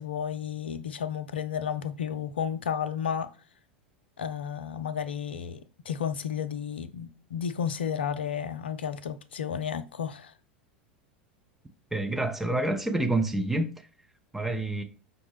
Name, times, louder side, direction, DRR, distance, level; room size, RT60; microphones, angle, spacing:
voice 1, 0.0-3.3 4.2-5.6 5.9-10.3, left 8 dB, 80° left, 0.4 m, -32 dB
voice 2, 11.9-13.7 14.3-14.8, right 2 dB, 5° right, 0.5 m, -27 dB
5.6 x 2.0 x 3.2 m
figure-of-eight pair, 85°, 6 cm